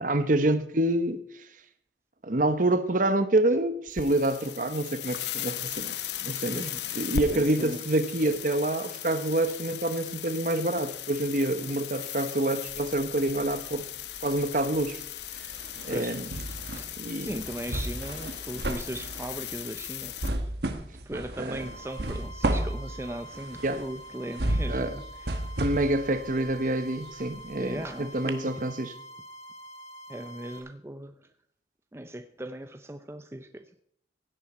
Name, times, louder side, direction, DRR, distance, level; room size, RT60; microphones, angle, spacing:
voice 1, 0.0-1.5 2.2-5.9 6.2-13.9 14.2-15.0 15.8-16.3 17.0-17.3 21.4-21.6 23.6-23.8 24.7-24.9 25.6-28.9, right 1 dB, 50° right, 1.0 m, -27 dB
sound 1, 3.9-20.3, left 10 dB, 75° left, 0.8 m, -37 dB
voice 2, 6.5-6.8 7.1-7.8 15.9-16.2 16.7-20.1 21.1-25.4 27.5-28.5 30.1-31.1 31.9-33.8, right 1 dB, 15° right, 0.5 m, -38 dB
sound 2, 12.7-13.8 14.1-27.9 28.3-28.4, right 1 dB, 65° right, 1.3 m, -34 dB
sound 3, 21.6-30.6, equal, 35° left, 2.1 m, -46 dB
16.5 x 9.8 x 4.3 m
head